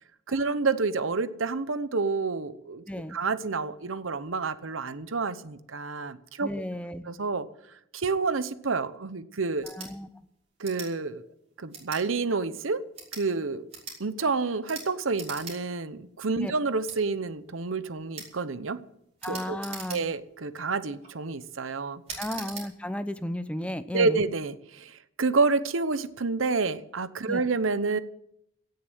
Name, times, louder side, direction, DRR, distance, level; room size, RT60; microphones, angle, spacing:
voice 1, 0.3-2.8 3.1-6.5 7.1-7.5 7.9-9.7 10.6-11.2 11.6-12.8 13.1-13.7 14.0-18.8 19.3-19.6 19.9-22.0 23.9-28.0, right 4 dB, 80° right, 13 dB, 0.9 m, -29 dB
voice 2, 2.9-3.2 6.4-7.1 9.6-10.1 16.4-16.5 19.2-20.0 22.2-24.2 27.3-27.5, left 1 dB, 5° left, 12 dB, 0.6 m, -34 dB
sound 1, 9.6-9.9 10.6-10.9 11.7-12.0 12.8-13.3 13.7-14.0 14.6-14.9 15.1-15.6 15.9-16.0 16.8-17.0 18.1-18.3 19.2-20.3 20.8-21.1 22.1-22.7, right 5 dB, 35° right, 4.5 m, -41 dB
17.0 x 6.8 x 9.2 m, 0.77 s
head